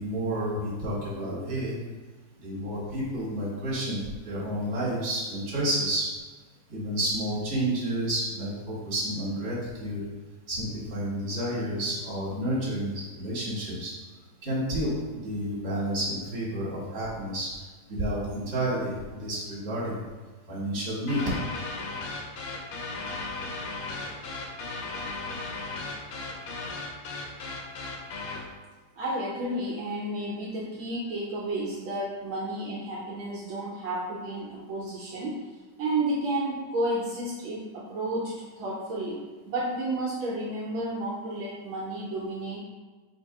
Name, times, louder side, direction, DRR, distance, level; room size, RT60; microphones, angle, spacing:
voice 1, 0.0-1.7 2.4-4.0 4.2-6.1 6.7-10.0 10.5-12.9 13.2-13.9 14.4-17.5 17.9-20.0 20.5-21.2, right 1 dB, 35° right, -7 dB, 1.5 m, -30 dB
sound 1, 21.1-28.5, left 3 dB, 85° left, 1.5 m, -36 dB
voice 2, 29.0-35.4 35.8-39.2 39.5-42.6, right 1 dB, 75° right, -5 dB, 1.4 m, -31 dB
4.0 x 2.7 x 4.5 m, 1.4 s
omnidirectional pair, 2.4 m